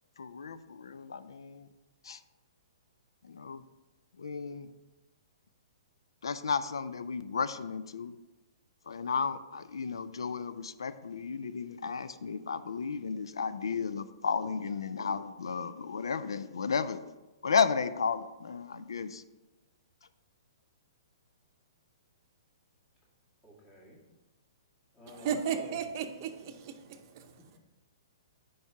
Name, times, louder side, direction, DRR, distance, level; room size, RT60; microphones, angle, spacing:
voice 1, 0.2-1.7 2.0-2.2 3.2-3.6 4.2-4.7 6.2-8.1 8.9-17.0 17.4-19.2, left 5 dB, 80° left, 0.4 m, -33 dB
voice 2, 23.4-24.0 24.9-25.8 27.5-27.6, equal, 20° left, 2.2 m, -50 dB
voice 3, 25.1-27.2, right 7 dB, 45° right, 0.7 m, -35 dB
4.8 x 4.4 x 5.7 m
hypercardioid pair, 130°, 2 cm